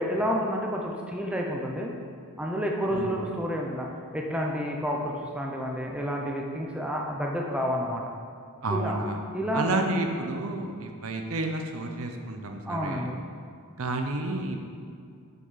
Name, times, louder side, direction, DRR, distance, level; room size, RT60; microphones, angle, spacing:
voice 1, 0.0-1.9 2.4-3.9 4.1-8.0 8.7-9.0 9.3-9.8 12.7-13.2, equal, 5° right, -1 dB, 0.7 m, -29 dB
voice 2, 8.6-9.2 9.5-13.1 13.8-14.6, right 2 dB, 65° right, 4 dB, 0.8 m, -30 dB
7.8 x 6.0 x 5.7 m, 2.3 s
head